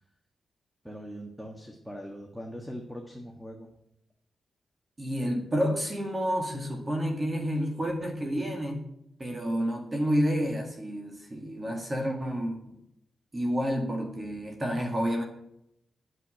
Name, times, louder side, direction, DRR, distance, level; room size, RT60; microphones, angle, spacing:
voice 1, 0.8-3.7, equal, ahead, 2 dB, 1.7 m, -41 dB
voice 2, 5.0-8.8 9.2-12.8 13.3-15.2, equal, 25° right, 2 dB, 2.1 m, -29 dB
9.7 x 7.7 x 9.0 m, 0.79 s
wide cardioid pair, 110°, 0 cm